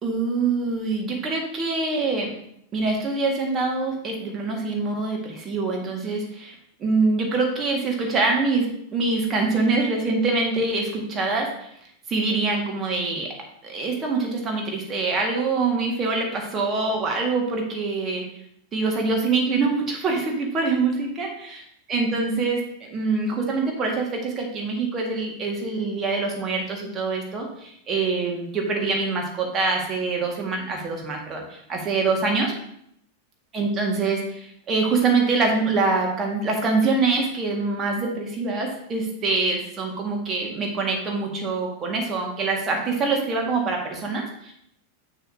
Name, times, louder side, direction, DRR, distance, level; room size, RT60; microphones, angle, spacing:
voice 1, 0.0-2.3 2.7-6.5 6.8-8.7 8.9-11.7 12.1-13.3 13.6-18.2 18.7-21.6 21.9-32.5 33.5-44.5, right 3 dB, 25° right, 0 dB, 1.8 m, -24 dB
7.5 x 6.5 x 2.8 m, 0.72 s
figure-of-eight pair, 90°, 0 cm